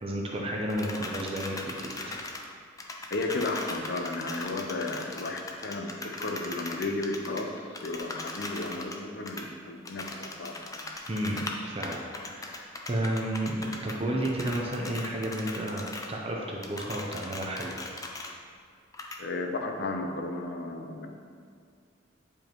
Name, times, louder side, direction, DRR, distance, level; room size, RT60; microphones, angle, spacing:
voice 1, 0.0-2.2 11.1-17.8, right 1 dB, 30° right, -1 dB, 0.6 m, -32 dB
sound 1, 0.7-2.5 2.8-9.0 9.3-9.4 9.8-11.6 11.8-14.0 14.2-16.1 16.4-18.3 18.9-19.2, left 2 dB, 20° left, 0.5 m, -39 dB
voice 2, 3.1-5.9 6.2-7.5 7.8-10.9 19.2-21.1, left 2 dB, 60° left, 4 dB, 0.7 m, -33 dB
8.7 x 5.1 x 3.0 m, 2.2 s
head